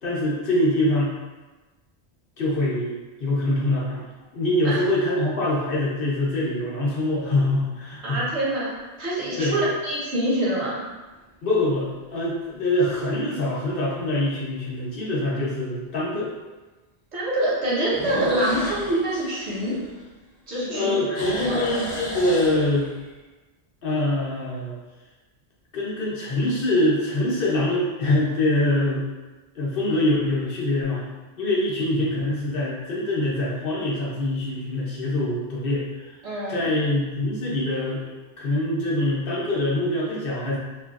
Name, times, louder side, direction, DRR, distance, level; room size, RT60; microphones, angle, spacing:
voice 1, 0.0-1.2 2.4-2.9 3.2-4.1 4.3-8.2 9.4-9.6 11.4-16.3 20.7-22.9 23.8-24.8 25.7-29.1 29.5-31.0 31.4-36.1 36.5-38.0 38.4-40.6, left 1 dB, 60° left, -5 dB, 0.9 m, -24 dB
sound 1, 4.2-4.9 5.6-5.7 10.9-11.4 11.8-11.9 12.5-12.6 12.8-12.9 14.4-14.5 17.9-20.4 20.7-23.1, equal, 35° left, 0.7 m, -34 dB
voice 2, 8.0-8.7 9.0-10.8 17.1-19.8 20.5-21.0 21.3-21.8 36.2-36.7, right 1 dB, 85° right, -8 dB, 1.3 m, -25 dB
3.3 x 2.4 x 2.4 m, 1.2 s
omnidirectional pair, 1.1 m